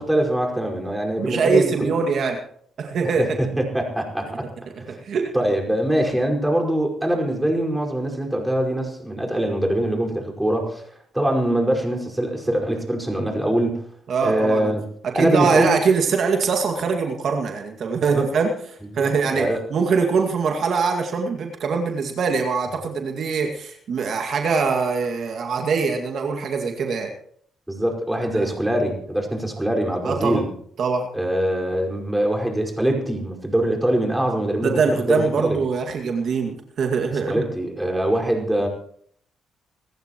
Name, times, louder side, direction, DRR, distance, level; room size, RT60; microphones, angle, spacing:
voice 1, 0.0-1.9 3.2-4.5 4.9-5.0 5.3-10.8 11.1-13.8 14.2-14.8 15.1-15.7 18.1-18.3 18.9-19.6 27.7-30.5 31.1-35.6 37.3-38.7, right 1 dB, 5° right, 0 dB, 5.2 m, -23 dB
voice 2, 1.2-2.4 2.8-3.3 4.9-5.3 14.1-14.7 15.0-27.1 28.3-28.5 30.0-30.4 30.8-31.1 34.6-37.4, right 5 dB, 60° right, 3 dB, 2.1 m, -23 dB
26.0 x 14.5 x 3.1 m, 0.62 s
cardioid pair, 90°, 0 cm